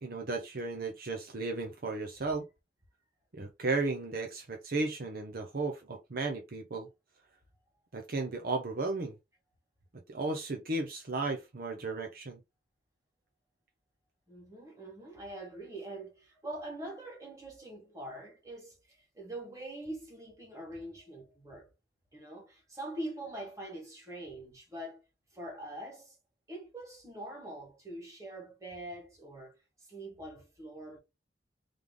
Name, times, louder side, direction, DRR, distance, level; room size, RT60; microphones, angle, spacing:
voice 1, 0.0-2.5 3.3-6.9 7.9-9.2 10.1-12.4, right 3 dB, 55° right, 0.7 m, -34 dB
voice 2, 14.3-21.7 22.1-25.0 25.3-26.2 26.5-31.0, right 1 dB, 20° right, 1.9 m, -44 dB
3.5 x 3.3 x 3.8 m
head